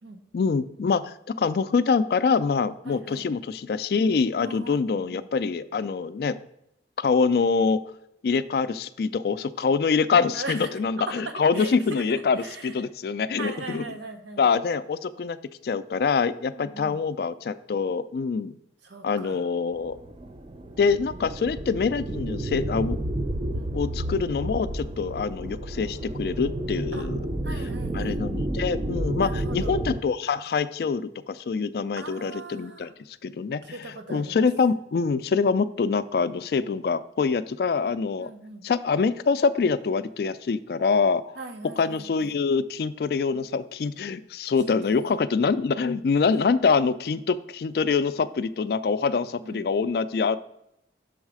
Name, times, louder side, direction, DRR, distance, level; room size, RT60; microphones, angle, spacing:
voice 1, 0.3-6.4 7.0-7.8 8.2-13.8 14.4-15.4 15.6-18.5 19.0-20.0 20.8-23.0 23.4-23.5 23.7-27.2 27.9-32.9 33.2-33.8 34.1-38.3 38.6-41.4 41.8-50.4, left 5 dB, 60° left, 14 dB, 0.3 m, -25 dB
voice 2, 2.8-3.3 4.4-5.3 10.3-10.7 11.2-12.7 13.4-14.4 16.5-17.0 18.8-19.4 23.5-23.7 26.9-27.1 27.4-28.2 29.2-29.8 32.0-32.9 33.6-34.5 38.2-38.6 41.4-42.4 44.6-45.1 46.3-46.5 49.4-49.7, right 3 dB, 90° right, 6 dB, 0.9 m, -40 dB
sound 1, 19.8-30.0, right 1 dB, 30° right, 0.4 m, -31 dB
6.4 x 4.0 x 4.7 m, 0.79 s
head